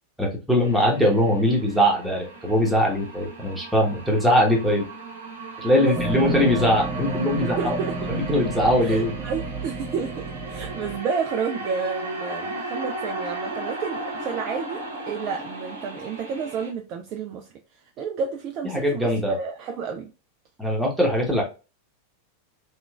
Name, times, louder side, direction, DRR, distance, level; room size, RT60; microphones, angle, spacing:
voice 1, 0.2-4.8 5.6-7.8 8.1-9.1 18.6-19.4 20.6-21.4, equal, 5° right, -2 dB, 1.1 m, -21 dB
sound 1, 0.6-16.7, right 2 dB, 70° right, 0.9 m, -36 dB
sound 2, 5.9-11.0, right 2 dB, 20° right, 0.8 m, -31 dB
voice 2, 7.4-7.9 8.8-10.1 10.5-17.4 18.0-20.1, right 6 dB, 35° right, 3 dB, 0.4 m, -30 dB
3.1 x 3.0 x 2.3 m, 0.31 s
figure-of-eight pair, 90°, 0 cm